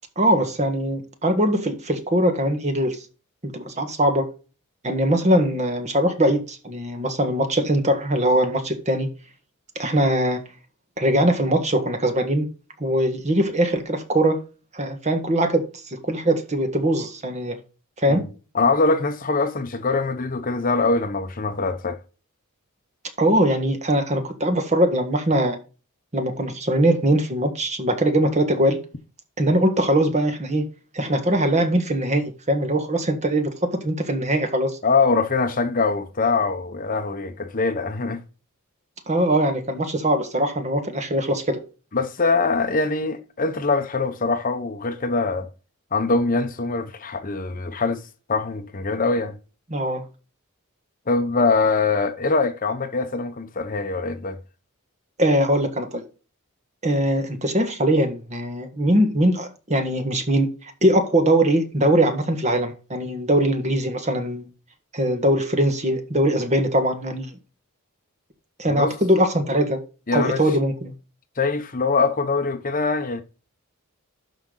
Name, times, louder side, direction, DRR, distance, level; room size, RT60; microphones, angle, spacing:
voice 1, 0.2-3.0 3.4-4.3 4.8-9.1 9.8-10.4 11.0-12.5 12.8-14.4 14.7-15.6 15.9-17.6 18.0-18.2 23.2-25.6 26.1-28.8 29.4-30.6 30.9-34.8 39.1-41.6 49.7-50.0 55.2-56.0 56.8-64.5 64.9-67.3 68.6-69.8 70.1-70.9, right 1 dB, 30° right, 1.6 m, -21 dB
voice 2, 18.5-22.0 34.8-38.2 41.9-45.5 45.9-48.0 48.3-49.4 51.1-54.4 68.7-68.9 70.1-70.4 71.4-73.2, left 3 dB, 40° left, 0.9 m, -23 dB
12.0 x 5.1 x 3.9 m
head